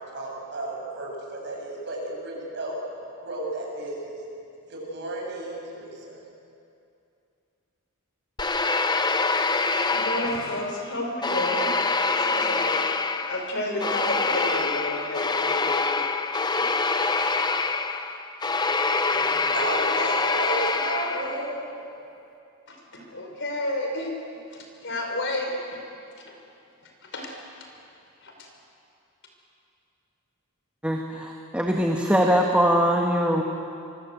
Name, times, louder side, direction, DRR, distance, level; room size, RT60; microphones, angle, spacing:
voice 1, 0.1-2.7 3.2-4.2 4.7-6.2 19.1-21.9, right 2 dB, 50° right, -1 dB, 7.4 m, -33 dB
sound 1, 8.4-10.8 11.2-21.5, left 4 dB, 20° left, 0.8 m, -25 dB
voice 2, 9.9-12.8 13.3-16.0 16.5-16.6 18.6-18.7 22.7-24.1 24.5-25.5 27.1-27.3 28.2-28.3, left 1 dB, 55° left, 2 dB, 5.2 m, -31 dB
voice 3, 30.8-33.4, equal, 5° right, 0 dB, 1.6 m, -22 dB
26.0 x 24.5 x 8.2 m, 2.6 s
head